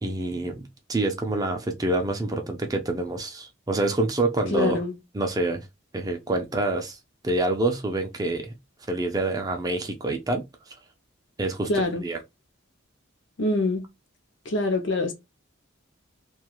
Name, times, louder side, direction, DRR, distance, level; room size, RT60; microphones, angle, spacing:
voice 1, 0.0-4.8 5.1-5.7 5.9-7.0 7.2-8.5 8.9-10.4 11.4-11.7 12.0-12.2, right 2 dB, 20° right, 0.4 m, -27 dB
voice 2, 4.5-5.0 11.7-12.0 13.4-13.9 14.5-15.1, left 2 dB, 60° left, 0.7 m, -25 dB
2.3 x 2.3 x 2.9 m
head